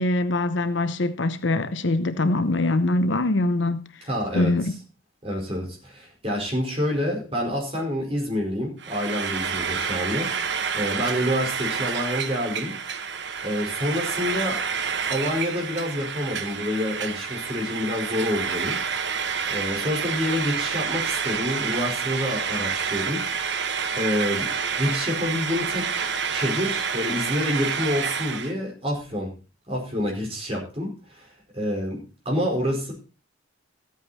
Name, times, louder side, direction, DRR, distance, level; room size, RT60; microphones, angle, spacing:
voice 1, 0.0-3.8 4.3-4.8, left 2 dB, 65° left, 0.9 m, -23 dB
voice 2, 4.0-4.5 5.2-12.7 13.4-14.6 15.1-18.7 19.5-23.2 23.9-24.5 24.8-29.3 29.7-31.3 31.5-32.0 32.2-32.9, left 1 dB, 30° right, 4.8 m, -27 dB
Frying (food), 8.8-28.5, right 6 dB, 55° right, 1.0 m, -28 dB
14.5 x 8.6 x 4.3 m
head